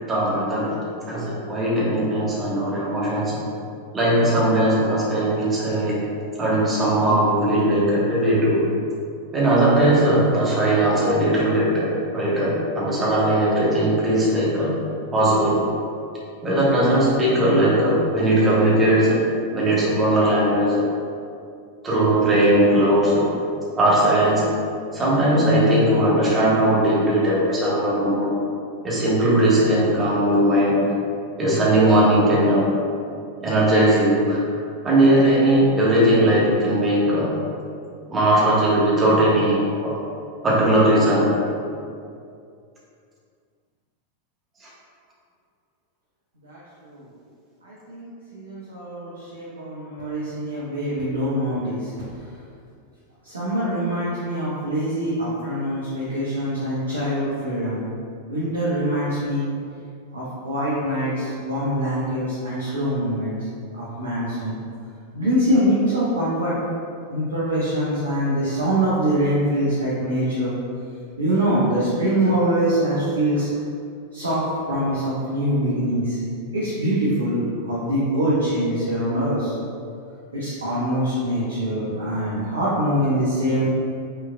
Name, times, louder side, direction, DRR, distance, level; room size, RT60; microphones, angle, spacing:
voice 1, 0.1-0.8 1.1-3.4 3.9-6.0 6.4-8.6 9.3-11.9 12.1-14.7 15.1-15.6 16.4-19.2 19.5-20.9 21.8-23.2 23.8-24.5 24.9-28.3 28.8-30.9 31.4-32.7 33.4-34.4 34.8-37.3 38.1-39.9 40.4-41.3, right 1 dB, 20° right, -7 dB, 1.3 m, -19 dB
voice 2, 47.6-51.9 53.2-57.8 58.3-59.5 60.1-63.5 63.8-64.6 65.1-66.5 67.1-70.6 71.2-73.5 74.1-74.4 74.7-76.2 76.5-79.5 80.3-83.6, equal, 70° right, -9 dB, 1.0 m, -24 dB
5.5 x 3.9 x 2.2 m, 2.4 s
figure-of-eight pair, 90°, 0 cm